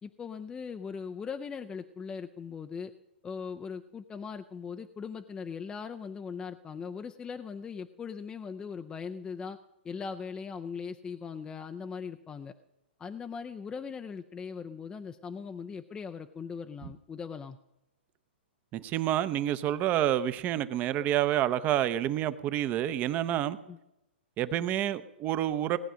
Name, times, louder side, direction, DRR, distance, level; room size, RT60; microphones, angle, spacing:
voice 1, 0.0-2.9 3.2-9.6 9.8-12.5 13.0-17.6 23.7-23.8, left 6 dB, 15° left, 7 dB, 0.5 m, -39 dB
voice 2, 18.7-23.6 24.4-25.8, right 12 dB, 25° right, 14 dB, 0.7 m, -28 dB
18.0 x 9.1 x 6.3 m, 0.90 s
hypercardioid pair, 130°, 6 cm